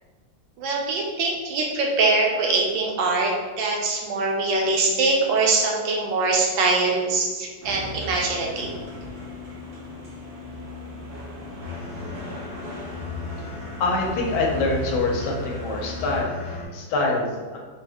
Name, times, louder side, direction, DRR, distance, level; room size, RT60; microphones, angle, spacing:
voice 1, 0.6-8.7, right 3 dB, 75° right, -1 dB, 1.2 m, -23 dB
sound 1, 7.6-16.2, left 2 dB, 55° right, 0.7 m, -36 dB
sound 2, 11.6-16.7, left 4 dB, 20° left, 0.6 m, -37 dB
voice 2, 13.8-17.6, left 2 dB, 70° left, -1 dB, 1.1 m, -25 dB
3.5 x 2.0 x 3.3 m, 1.5 s
omnidirectional pair, 2.1 m